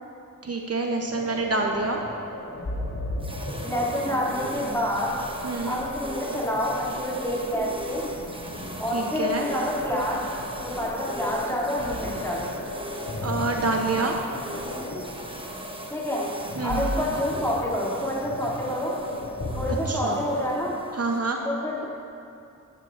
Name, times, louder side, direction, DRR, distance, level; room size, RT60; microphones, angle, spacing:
voice 1, 0.4-2.0 5.4-5.8 8.9-9.5 13.2-14.2 16.6-16.9 19.9-20.2 20.9-21.4, right 3 dB, 50° right, 1 dB, 0.8 m, -27 dB
sound 1, 1.1-20.8, left 1 dB, 60° left, 2.0 m, -35 dB
sound 2, 3.2-21.2, right 1 dB, 15° right, 1.0 m, -40 dB
voice 2, 3.6-5.2 5.6-8.1 8.8-10.2 10.6-12.5 15.9-16.3 16.6-19.0 19.6-20.8 21.4-21.8, left 1 dB, 10° left, -6 dB, 2.5 m, -28 dB
13.5 x 11.0 x 2.5 m, 2.6 s
wide cardioid pair, 75°, 32 cm